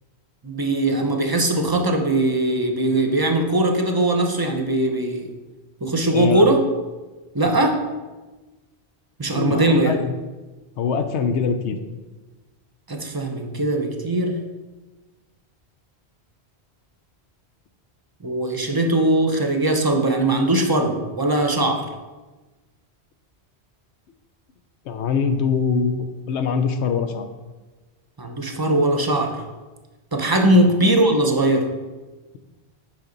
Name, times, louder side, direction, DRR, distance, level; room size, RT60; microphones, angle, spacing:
voice 1, 0.4-5.3 5.8-6.6 7.3-7.8 9.2-9.9 12.9-14.4 18.2-21.9 28.2-29.4 30.1-31.7, right 1 dB, 25° right, 4 dB, 0.7 m, -20 dB
voice 2, 6.1-6.4 7.4-7.6 9.3-10.1 10.8-11.8 24.9-27.3 30.5-30.7, left 5 dB, 90° left, 8 dB, 1.0 m, -23 dB
8.6 x 5.2 x 3.9 m, 1.2 s
omnidirectional pair, 1.1 m